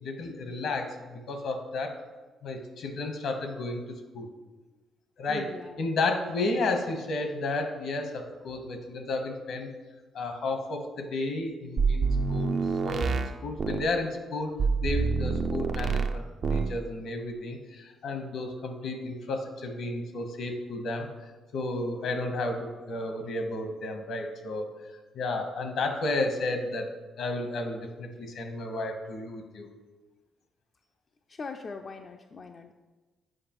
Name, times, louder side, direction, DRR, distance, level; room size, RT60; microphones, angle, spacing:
voice 1, 0.0-2.0 2.4-4.3 5.2-5.5 5.8-9.7 10.1-14.5 14.8-16.2 16.5-21.1 21.5-24.7 25.1-26.9 27.2-29.7, left 2 dB, 70° left, 5 dB, 1.0 m, -32 dB
voice 2, 5.3-5.8 31.3-32.7, left 4 dB, 40° left, 4 dB, 0.3 m, -41 dB
sound 1, 11.8-13.9 14.6-16.2 16.4-16.8, right 4 dB, 55° right, 0.4 m, -27 dB
7.7 x 4.9 x 3.0 m, 1.2 s
cardioid pair, 90°, 0 cm